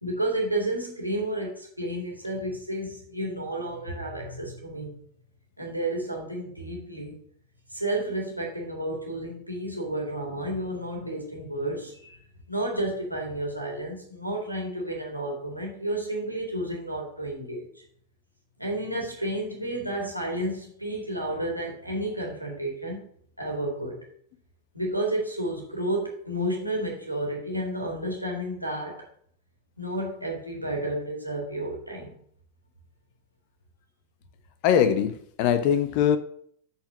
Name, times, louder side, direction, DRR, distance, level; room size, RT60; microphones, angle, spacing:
voice 1, 0.0-4.9 5.6-7.2 7.7-12.1 12.5-17.8 18.6-23.0 23.4-24.0 24.7-29.1 29.8-32.1, right 1 dB, 90° right, -1 dB, 2.1 m, -31 dB
voice 2, 34.6-36.2, left 8 dB, 45° left, 12 dB, 0.6 m, -22 dB
7.8 x 4.2 x 5.8 m, 0.62 s
figure-of-eight pair, 90°, 0 cm